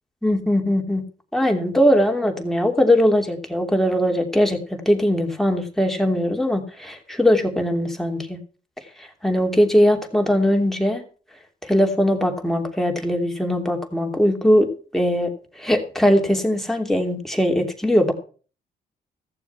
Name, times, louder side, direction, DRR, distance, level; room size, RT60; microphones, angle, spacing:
voice 1, 0.2-1.0 1.3-8.4 9.0-11.0 11.6-15.3 15.6-18.1, equal, ahead, 3 dB, 2.9 m, -20 dB
15.0 x 7.1 x 5.9 m, 0.40 s
supercardioid pair, 60°, 18 cm